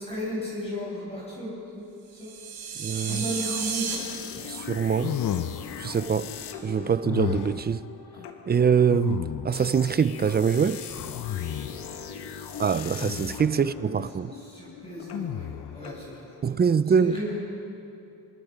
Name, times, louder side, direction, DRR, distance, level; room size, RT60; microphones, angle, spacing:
voice 1, 0.0-2.4 3.0-4.0 6.1-6.3 11.3-12.1 13.5-13.7 14.3-16.5 17.0-17.4, equal, 15° left, 6.7 m, -35 dB
sound 1, 2.1-4.0, right 7 dB, 70° right, 6.4 m, -32 dB
voice 2, 2.8-3.2 4.5-5.2 5.8-6.3 6.6-7.9 8.5-10.8 12.6-14.3 16.4-17.2, right 6 dB, 25° right, 0.4 m, -24 dB
sound 2, 3.1-16.8, left 7 dB, 75° left, 1.8 m, -41 dB
sound 3, 5.0-5.9 7.0-7.7 8.9-9.7 10.9-11.9 13.0-13.5 15.1-15.8, left 10 dB, 50° left, 0.8 m, -32 dB
26.0 x 21.5 x 5.1 m
cardioid pair, 115°, 41 cm